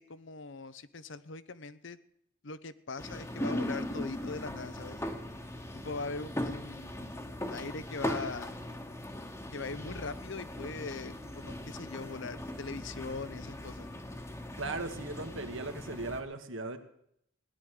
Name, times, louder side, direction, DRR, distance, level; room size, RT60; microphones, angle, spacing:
voice 1, 0.0-2.0 2.4-5.0 5.7-8.5 9.5-13.9, left 3 dB, 60° left, 14 dB, 0.8 m, -41 dB
sound 1, 3.0-16.2, left 1 dB, 15° left, 1.2 m, -39 dB
voice 2, 14.6-16.8, right 2 dB, 70° right, 7 dB, 1.7 m, -37 dB
17.0 x 10.5 x 6.6 m, 0.72 s
head